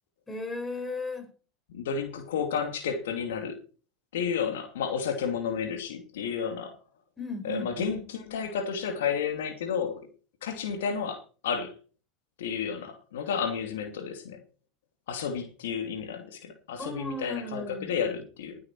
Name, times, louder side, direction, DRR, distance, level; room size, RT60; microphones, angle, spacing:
voice 1, 0.3-1.3 7.2-7.9 16.8-17.9, left 1 dB, 15° left, 5.2 m, -36 dB
voice 2, 1.7-3.6 4.1-6.8 7.4-10.0 10.4-11.7 12.4-14.4 15.1-18.6, left 6 dB, 85° left, 2.6 m, -31 dB
20.0 x 8.3 x 4.5 m
hypercardioid pair, 105°, 0 cm